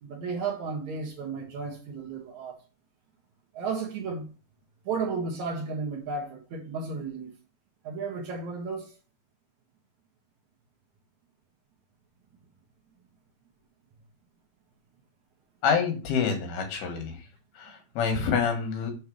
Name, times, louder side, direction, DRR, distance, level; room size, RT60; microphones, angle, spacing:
voice 1, 0.0-2.6 3.5-4.3 4.8-7.4 7.8-8.9, right 4 dB, 60° right, 2.3 m, -33 dB
voice 2, 15.6-17.2 17.6-18.9, left 6 dB, 90° left, 3.7 m, -27 dB
7.4 x 4.5 x 6.3 m
omnidirectional pair, 4.3 m